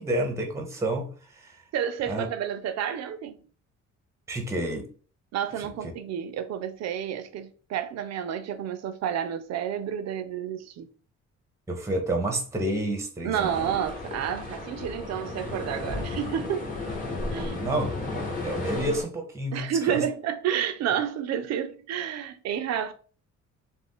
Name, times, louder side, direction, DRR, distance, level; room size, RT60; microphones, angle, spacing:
voice 1, 0.0-1.6 2.1-2.3 4.3-4.9 11.7-13.8 17.3-18.0 18.4-20.0, right 1 dB, 10° right, 0.6 m, -30 dB
voice 2, 1.7-3.4 5.3-10.9 13.2-16.7 17.3-17.8 19.5-22.9, right 9 dB, 60° right, 0.5 m, -30 dB
sound 1, 13.3-19.0, left 3 dB, 25° left, 1.0 m, -34 dB
2.5 x 2.1 x 3.5 m
cardioid pair, 90°, 30 cm